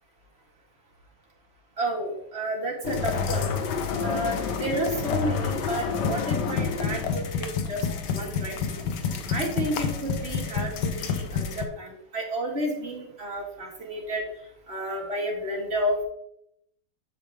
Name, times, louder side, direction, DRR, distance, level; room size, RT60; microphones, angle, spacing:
voice 1, 1.8-3.5 4.0-8.9 9.3-14.2 14.7-16.0, right 1 dB, 35° right, -2 dB, 2.2 m, -31 dB
sound 1, 2.8-11.7, left 6 dB, 80° left, 1.5 m, -28 dB
7.5 x 6.9 x 3.5 m, 0.75 s
omnidirectional pair, 1.9 m